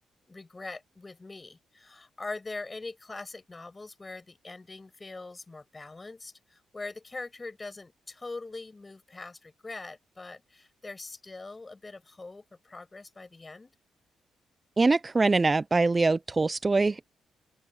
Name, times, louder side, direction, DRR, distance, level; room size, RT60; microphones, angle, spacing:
voice 1, 0.3-13.7, left 3 dB, 30° left, 5.7 m, -42 dB
voice 2, 14.8-17.0, right 3 dB, 30° right, 0.5 m, -23 dB
open air
supercardioid pair, 60°, 0 cm